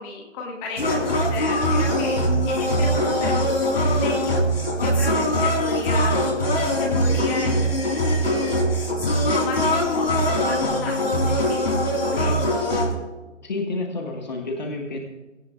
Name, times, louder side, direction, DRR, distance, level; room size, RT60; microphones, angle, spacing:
voice 1, 0.0-2.2 2.5-4.4 4.7-6.2 6.6-8.3 9.3-12.3, left 3 dB, 15° left, -2 dB, 2.1 m, -33 dB
sound 1, 0.8-12.9, equal, 55° left, 3.6 m, -22 dB
voice 2, 13.4-15.0, left 2 dB, 35° left, 2 dB, 1.8 m, -29 dB
17.5 x 17.0 x 2.5 m, 1.1 s
figure-of-eight pair, 145°, 37 cm